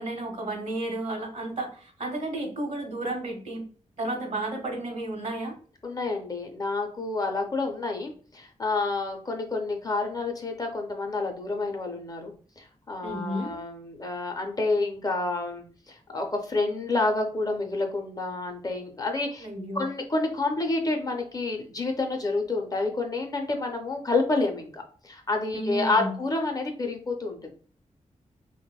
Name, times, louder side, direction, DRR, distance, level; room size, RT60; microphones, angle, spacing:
voice 1, 0.0-3.7 4.0-5.6 13.0-13.5 19.4-19.9 25.5-26.2, right 1 dB, 80° right, 2 dB, 0.8 m, -32 dB
voice 2, 5.8-19.5 19.7-27.5, left 3 dB, 30° left, 3 dB, 0.4 m, -29 dB
2.8 x 2.0 x 2.2 m, 0.43 s
wide cardioid pair, 140°, 13 cm